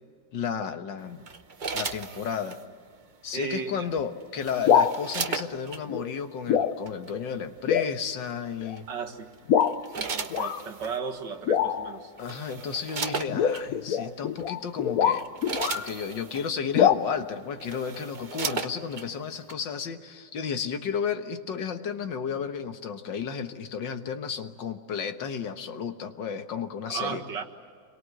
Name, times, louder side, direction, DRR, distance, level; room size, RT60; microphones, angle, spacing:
voice 1, 0.3-1.3 1.7-2.6 3.2-8.9 12.2-15.3 15.7-27.2, left 7 dB, 90° left, 8 dB, 2.0 m, -33 dB
sound 1, 1.3-2.6 4.0-5.8 6.9-7.1 8.8-9.1 9.6-11.0 11.8-11.9 12.2-13.7 14.4-14.6 15.0-16.5 17.2-17.3 17.5-19.1 19.5-19.6, right 4 dB, 35° right, 0.8 m, -35 dB
voice 2, 3.3-3.9 8.9-9.3 10.0-12.1 26.9-27.4, right 5 dB, 75° right, 3 dB, 2.4 m, -35 dB
sound 2, 4.5-5.0 5.9-6.2 6.5-6.8 7.1-7.2 7.7-7.9 8.6-8.8 9.5-9.8 10.3-10.6 11.5-12.0 13.3-15.9 16.7-16.9, left 8 dB, 60° left, 1.1 m, -24 dB
28.5 x 23.0 x 7.8 m, 2.1 s
omnidirectional pair, 1.9 m